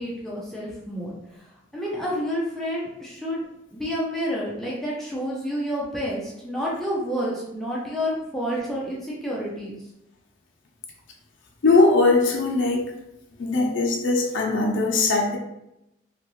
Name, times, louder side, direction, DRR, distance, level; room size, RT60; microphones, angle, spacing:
voice 1, 0.0-9.8, equal, ahead, -6 dB, 0.5 m, -29 dB
voice 2, 11.6-12.9 13.4-15.4, left 3 dB, 80° left, 0 dB, 0.6 m, -20 dB
2.9 x 2.4 x 3.0 m, 0.85 s
head